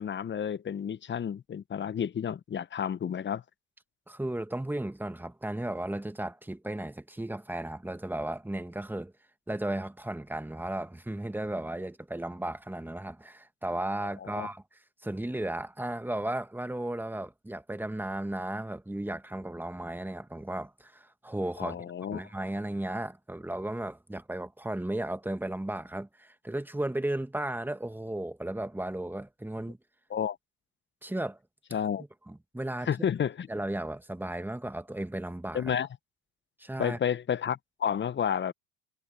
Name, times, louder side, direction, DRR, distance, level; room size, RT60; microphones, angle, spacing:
voice 1, 0.0-3.4 14.2-14.5 21.6-22.2 30.1-30.4 31.7-32.0 32.9-33.5 35.5-35.9 36.8-38.5, left 8 dB, 30° left, 0.8 m, -31 dB
voice 2, 4.1-9.1 9.5-21.8 22.1-29.8 31.0-31.4 32.3-32.9 33.5-35.7 36.6-37.0, right 1 dB, 5° right, 1.7 m, -35 dB
hypercardioid pair, 75°, 36 cm